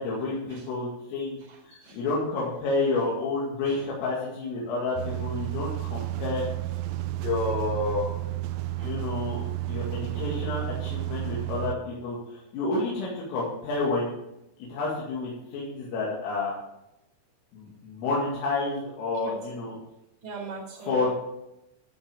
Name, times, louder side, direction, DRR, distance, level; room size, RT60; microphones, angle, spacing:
voice 1, 0.0-1.4 1.9-6.4 7.2-8.1 8.8-9.4 9.7-14.2 14.7-16.5 17.5-19.7 20.9-21.1, left 3 dB, 90° left, -6 dB, 4.8 m, -29 dB
voice 2, 1.4-2.0 3.6-3.9 19.1-19.5 20.2-21.1, right 4 dB, 45° right, -3 dB, 5.4 m, -40 dB
sound 1, 5.0-11.8, right 15 dB, 85° right, 3.1 m, -32 dB
12.5 x 6.4 x 5.9 m, 0.88 s
omnidirectional pair, 5.7 m